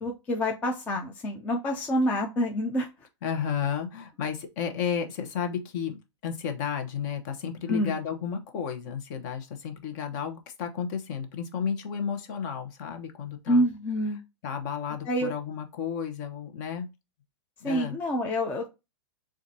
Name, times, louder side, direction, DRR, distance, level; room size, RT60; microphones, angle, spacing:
voice 1, 0.0-2.9 7.7-8.0 13.5-14.2 15.1-15.3 17.6-18.7, equal, 10° left, 0.3 m, -27 dB
voice 2, 3.2-6.0 6.2-13.7 14.4-16.9 17.6-17.9, left 7 dB, 35° left, 0.9 m, -32 dB
7.0 x 2.5 x 2.7 m
hypercardioid pair, 155°, 16 cm